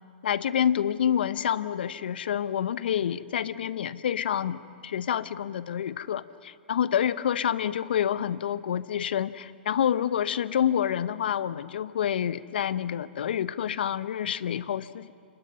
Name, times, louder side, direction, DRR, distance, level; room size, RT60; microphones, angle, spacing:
voice 1, 0.2-15.1, left 9 dB, 65° left, 16 dB, 0.8 m, -28 dB
29.0 x 26.0 x 5.6 m, 2.2 s
hypercardioid pair, 120°, 6 cm